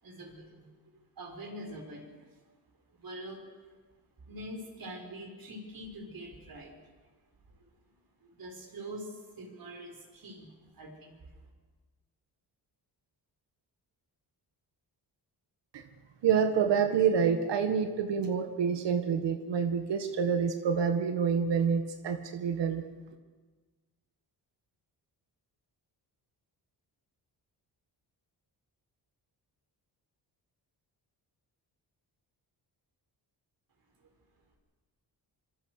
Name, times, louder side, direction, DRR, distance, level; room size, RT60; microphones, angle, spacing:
voice 1, 0.0-2.1 3.0-3.5 4.2-6.8 7.6-7.7 8.2-11.2, right 1 dB, 55° right, 3 dB, 6.0 m, -44 dB
voice 2, 16.2-22.8, right 7 dB, 80° right, 7 dB, 1.8 m, -27 dB
26.0 x 22.5 x 6.6 m, 1.4 s
cardioid pair, 95°, 42 cm